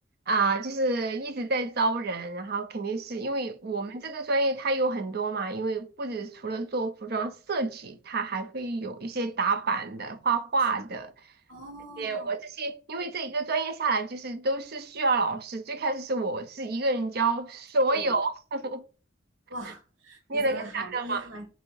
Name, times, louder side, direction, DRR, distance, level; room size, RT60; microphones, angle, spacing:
voice 1, 0.3-11.1 12.0-18.8 20.3-21.3, right 3 dB, 55° right, 0.6 m, -29 dB
voice 2, 11.5-12.3 17.9-18.2 19.5-21.5, right 1 dB, 85° right, 1.3 m, -41 dB
3.6 x 2.8 x 4.5 m
head